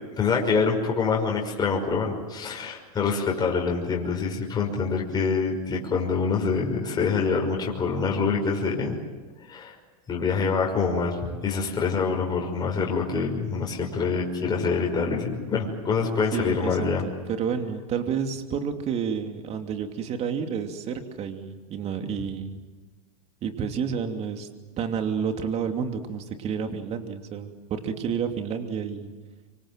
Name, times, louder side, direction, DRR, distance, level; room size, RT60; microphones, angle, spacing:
voice 1, 0.2-9.0 9.5-9.8 10.1-17.0, left 5 dB, 20° left, -1 dB, 5.7 m, -25 dB
voice 2, 16.3-22.6 23.4-24.5 24.8-29.1, right 7 dB, 35° right, 5 dB, 2.8 m, -30 dB
25.5 x 25.0 x 7.7 m, 1.3 s
hypercardioid pair, 120°, 19 cm